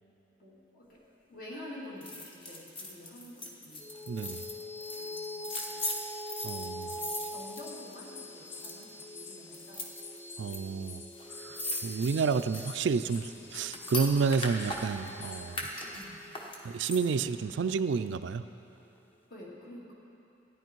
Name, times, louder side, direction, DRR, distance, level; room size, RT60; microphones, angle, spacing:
voice 1, 0.4-1.0 1.3-3.9 4.9-5.8 6.8-9.9 11.5-11.6 15.9-16.2 19.3-19.9, left 1 dB, 50° left, -5 dB, 2.5 m, -48 dB
sound 1, 2.0-8.2 8.5-9.0 9.5-10.6 10.8-10.9 11.1-15.1 15.5-17.3 17.7-17.8, left 1 dB, 30° left, 1.0 m, -39 dB
sound 2, 3.8-18.5, equal, 10° left, 0.3 m, -45 dB
voice 2, 4.1-4.4 6.4-7.0 10.4-11.0 11.3-15.7 16.6-18.4, right 5 dB, 70° right, 12 dB, 0.3 m, -30 dB
sound 3, 6.3-15.6, left 5 dB, 75° left, 0.8 m, -49 dB
14.5 x 9.8 x 4.6 m, 2.9 s
head